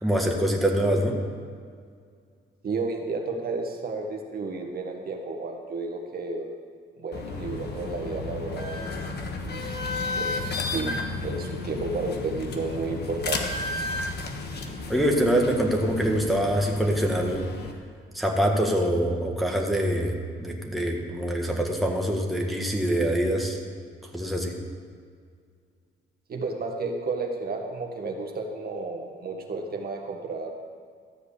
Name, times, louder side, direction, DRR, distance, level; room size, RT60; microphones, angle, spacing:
voice 1, 0.0-1.1 14.9-17.5 18.1-20.1 20.4-23.6 24.1-24.5, equal, ahead, -1 dB, 1.6 m, -24 dB
voice 2, 2.6-6.5 7.0-8.9 9.4-9.8 10.2-13.4 26.3-30.5, right 3 dB, 50° right, 1 dB, 1.5 m, -32 dB
sound 1, 7.1-17.7, left 3 dB, 55° left, 1.3 m, -33 dB
13.5 x 4.9 x 8.4 m, 2.1 s
cardioid pair, 90°, 20 cm